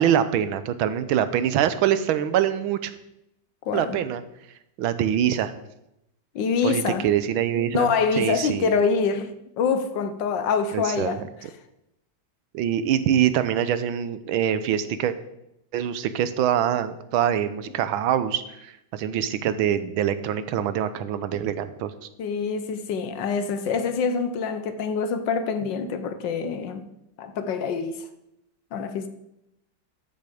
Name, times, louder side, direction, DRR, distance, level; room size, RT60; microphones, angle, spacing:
voice 1, 0.0-2.9 3.7-4.2 4.8-5.5 6.6-7.9 8.2-8.7 10.7-11.5 12.5-15.2 15.7-21.9, right 10 dB, 90° right, 1.6 m, -24 dB
voice 2, 3.6-4.0 6.3-7.1 7.7-11.2 22.2-26.8 27.2-28.0 28.7-29.1, left 5 dB, 70° left, 1.5 m, -25 dB
13.5 x 6.5 x 5.1 m
omnidirectional pair, 2.2 m